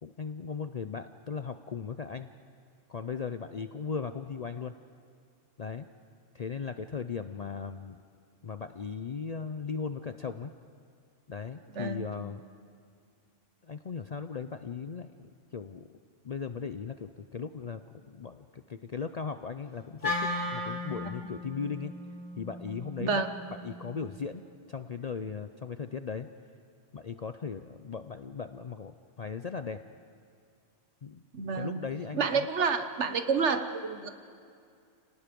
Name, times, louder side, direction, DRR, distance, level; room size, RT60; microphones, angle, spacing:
voice 1, 0.0-2.3 2.9-4.7 5.6-5.9 6.3-8.0 8.4-10.5 11.3-12.5 13.6-16.0 16.2-21.9 22.4-23.3 23.5-24.4 24.7-26.3 26.9-29.8 31.0-31.2 31.5-32.5, left 5 dB, 50° left, 9 dB, 0.5 m, -38 dB
voice 2, 11.7-12.1 23.0-23.3 31.3-31.8 32.1-34.1, right 5 dB, 70° right, 8 dB, 1.4 m, -29 dB
Wind instrument woodwind instrument, 20.0-24.3, left 1 dB, 30° left, 2.2 m, -37 dB
29.5 x 19.0 x 5.2 m, 2.3 s
omnidirectional pair, 1.3 m